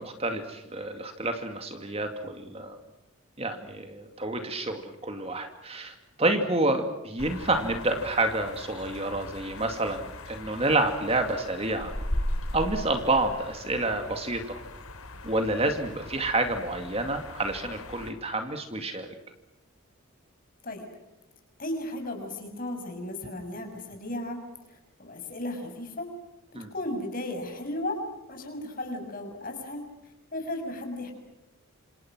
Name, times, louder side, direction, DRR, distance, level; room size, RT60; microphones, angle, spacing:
voice 1, 0.0-2.8 3.4-11.9 12.5-14.6 15.2-19.1 26.5-26.7, right 2 dB, 30° right, 6 dB, 2.3 m, -29 dB
sound 1, 7.2-18.1, left 1 dB, 85° left, 3.6 m, -38 dB
voice 2, 21.6-24.4 24.7-26.1 26.7-28.0 28.3-29.8 30.3-31.1, left 1 dB, 40° left, 4 dB, 6.4 m, -35 dB
27.5 x 27.5 x 6.2 m, 0.97 s
head